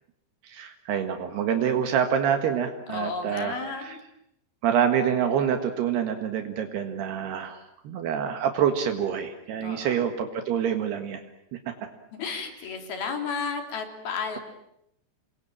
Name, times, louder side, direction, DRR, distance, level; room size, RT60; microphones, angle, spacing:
voice 1, 0.4-4.0 4.6-11.2 11.7-11.8, right 8 dB, 75° right, 7 dB, 3.7 m, -26 dB
voice 2, 2.9-4.0 9.6-10.1 12.2-14.4, left 5 dB, 65° left, 5 dB, 5.3 m, -33 dB
28.5 x 23.0 x 8.9 m, 0.79 s
omnidirectional pair, 4.8 m